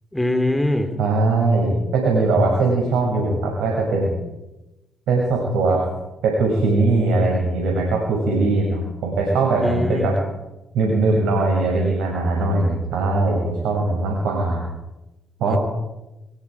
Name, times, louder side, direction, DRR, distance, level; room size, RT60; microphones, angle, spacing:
voice 1, 0.1-0.9 9.6-10.1 15.5-15.6, left 1 dB, 10° left, 6 dB, 4.0 m, -22 dB
voice 2, 1.0-4.1 5.1-5.8 6.2-10.1 10.7-14.6 15.4-15.6, right 3 dB, 75° right, -2 dB, 6.9 m, -20 dB
23.5 x 22.5 x 5.0 m, 0.98 s
hypercardioid pair, 50°, 0 cm